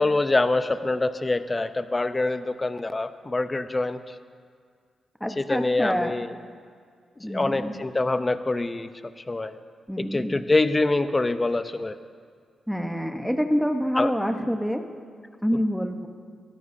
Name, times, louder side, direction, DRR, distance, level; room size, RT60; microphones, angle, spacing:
voice 1, 0.0-4.1 5.4-6.4 7.2-8.9 9.2-9.6 10.0-12.0 14.0-14.1, left 2 dB, 25° left, 11 dB, 0.7 m, -25 dB
voice 2, 5.2-6.1 7.2-7.7 9.9-10.4 12.7-14.8 15.4-16.1, equal, ahead, 5 dB, 1.0 m, -26 dB
21.5 x 13.5 x 2.7 m, 2.1 s
cardioid pair, 60°, 0 cm